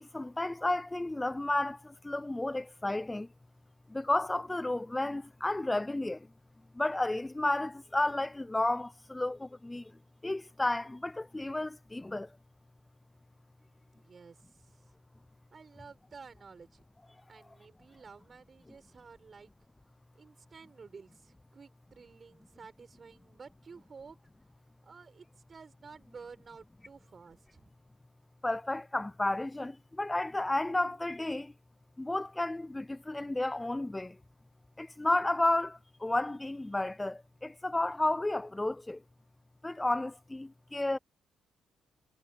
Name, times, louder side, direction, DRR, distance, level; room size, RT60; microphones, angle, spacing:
voice 1, 0.0-3.3 3.9-6.3 6.7-9.9 10.2-12.3 28.4-31.5 32.0-34.2 34.8-39.0 39.6-41.0, left 2 dB, 15° left, 0.5 m, -32 dB
voice 2, 13.9-14.9 15.5-16.8 17.3-19.5 20.1-24.2 24.8-27.7, right 5 dB, 40° right, 4.8 m, -52 dB
cardioid pair, 85°, 0 cm